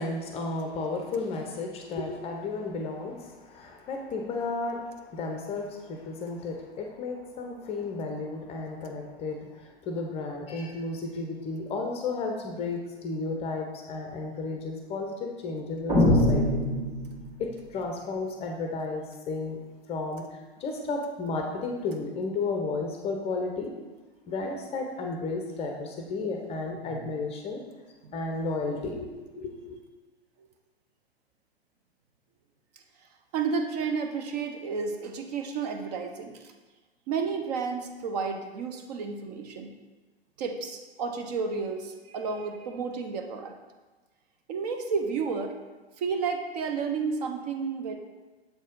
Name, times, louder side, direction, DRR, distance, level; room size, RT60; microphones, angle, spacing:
voice 1, 0.0-16.7 17.4-19.6 19.9-23.7 24.3-27.6 28.1-29.8, left 3 dB, 20° left, 2 dB, 0.6 m, -33 dB
sound 1, 15.9-17.5, left 1 dB, 15° right, 1.6 m, -23 dB
voice 2, 33.3-36.5 37.1-39.7 40.4-43.5 44.5-45.6 46.0-48.0, right 5 dB, 40° right, 4 dB, 0.6 m, -31 dB
7.0 x 4.1 x 3.7 m, 1.2 s
figure-of-eight pair, 105°, 32 cm